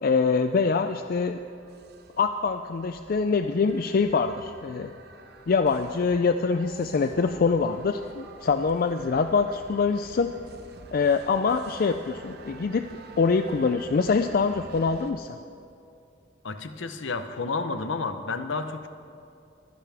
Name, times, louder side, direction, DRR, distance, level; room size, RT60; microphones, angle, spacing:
voice 1, 0.0-1.4 2.2-4.9 5.5-10.3 10.9-12.9 13.2-15.4, left 4 dB, 45° left, 8 dB, 0.4 m, -24 dB
sound 1, 0.9-15.1, right 3 dB, 55° right, 1.0 m, -48 dB
voice 2, 16.4-18.9, left 3 dB, 70° left, 9 dB, 0.8 m, -31 dB
23.0 x 10.5 x 3.5 m, 2.6 s
head